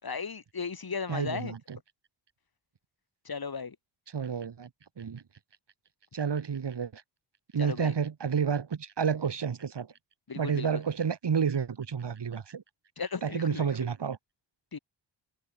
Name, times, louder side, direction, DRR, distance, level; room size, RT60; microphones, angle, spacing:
voice 1, 0.0-1.5 3.2-3.7 7.6-7.9 10.3-10.7 13.0-13.7 14.7-14.8, left 5 dB, 50° left, 5.0 m, -36 dB
voice 2, 1.1-1.8 4.1-4.7 5.0-5.2 6.1-7.0 7.5-9.9 10.3-12.6 13.2-14.2, right 6 dB, 60° right, 4.5 m, -30 dB
cardioid pair, 55°, 46 cm